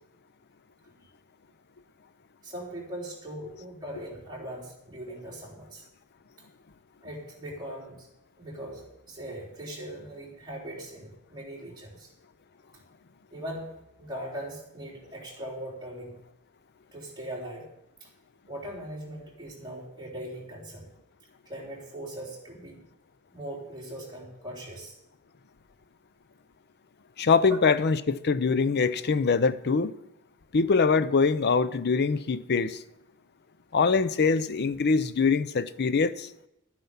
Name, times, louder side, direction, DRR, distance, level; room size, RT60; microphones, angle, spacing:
voice 1, 2.4-5.8 7.0-8.1 8.4-12.1 13.3-13.7 14.0-16.1 16.9-17.7 18.0-18.1 18.5-20.8 21.5-22.8 23.3-24.9 27.5-27.6, right 1 dB, 20° right, 4.0 m, -40 dB
voice 2, 27.2-30.0 30.5-32.8 33.7-36.3, left 4 dB, 50° left, 0.6 m, -23 dB
12.0 x 9.3 x 5.6 m
head